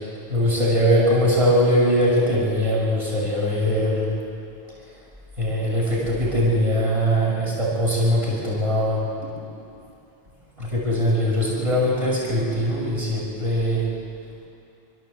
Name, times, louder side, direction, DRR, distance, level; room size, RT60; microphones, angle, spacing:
voice 1, 0.3-4.2 5.4-9.1 10.6-13.9, equal, 30° right, -6 dB, 6.2 m, -21 dB
28.5 x 13.5 x 8.0 m, 2.6 s
omnidirectional pair, 1.1 m